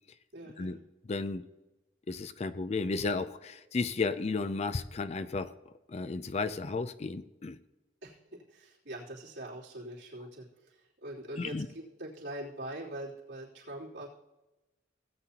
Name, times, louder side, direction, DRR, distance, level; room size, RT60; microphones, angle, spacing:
voice 1, 0.3-0.8 8.0-14.1, right 1 dB, 80° right, -7 dB, 3.2 m, -43 dB
voice 2, 1.0-1.4 2.1-5.5 5.9-7.6 11.4-11.7, left 3 dB, 35° left, 12 dB, 0.4 m, -33 dB
17.5 x 8.5 x 2.9 m, 1.0 s
head